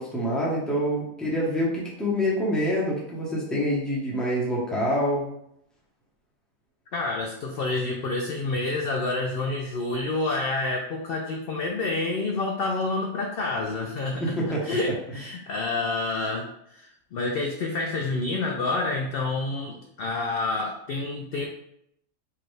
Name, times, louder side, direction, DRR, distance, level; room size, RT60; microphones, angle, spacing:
voice 1, 0.0-5.3 14.2-14.7, equal, ahead, -5 dB, 0.8 m, -26 dB
voice 2, 6.9-14.3 14.6-21.5, left 2 dB, 65° left, 1 dB, 0.6 m, -28 dB
4.7 x 2.4 x 3.2 m, 0.74 s
omnidirectional pair, 1.4 m